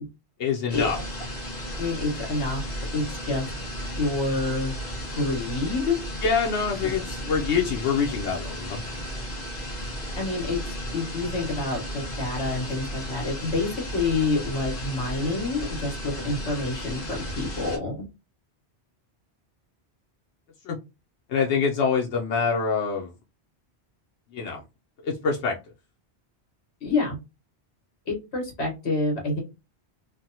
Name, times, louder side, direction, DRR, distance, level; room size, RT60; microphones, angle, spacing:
voice 1, 0.4-1.0 6.2-8.8 20.6-20.8 21.3-23.1 24.3-24.6 25.0-25.6, left 5 dB, 85° left, 0 dB, 0.9 m, -25 dB
sound 1, 0.7-17.8, equal, 35° left, 1.3 m, -34 dB
voice 2, 1.8-2.6 2.9-3.4 4.0-4.7 5.2-6.0 6.8-6.9 10.2-18.1 26.8-27.2 28.1-29.4, left 3 dB, 70° left, 0 dB, 1.6 m, -28 dB
3.3 x 2.1 x 2.7 m, 0.26 s
omnidirectional pair, 1.1 m